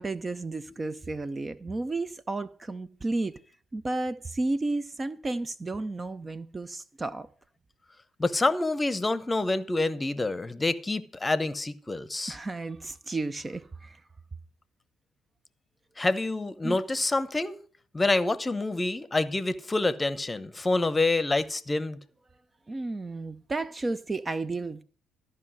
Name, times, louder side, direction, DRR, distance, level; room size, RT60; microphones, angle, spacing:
voice 1, 0.0-3.3 3.7-7.3 12.3-14.0 16.6-16.8 22.7-24.8, right 2 dB, 25° right, 0.6 m, -32 dB
voice 2, 8.2-12.4 16.0-17.6 17.9-22.0, left 2 dB, 20° left, 0.9 m, -27 dB
13.5 x 5.5 x 7.8 m
hypercardioid pair, 50°, 0 cm